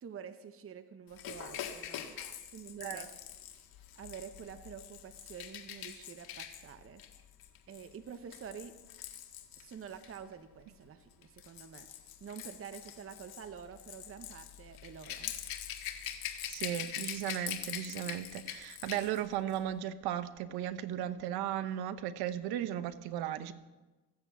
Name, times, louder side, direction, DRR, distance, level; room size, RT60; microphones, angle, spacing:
voice 1, 0.0-2.2 2.5-3.1 4.0-7.0 7.7-8.7 9.6-11.9 12.2-15.3, right 7 dB, 35° right, 9 dB, 0.9 m, -48 dB
Rattle / Rattle (instrument), 1.1-10.2 11.1-19.2 19.5-19.7, left 10 dB, 75° left, 1.7 m, -44 dB
voice 2, 16.5-23.5, right 11 dB, 90° right, 12 dB, 0.9 m, -36 dB
15.0 x 7.5 x 8.2 m, 1.2 s
cardioid pair, 95°, 37 cm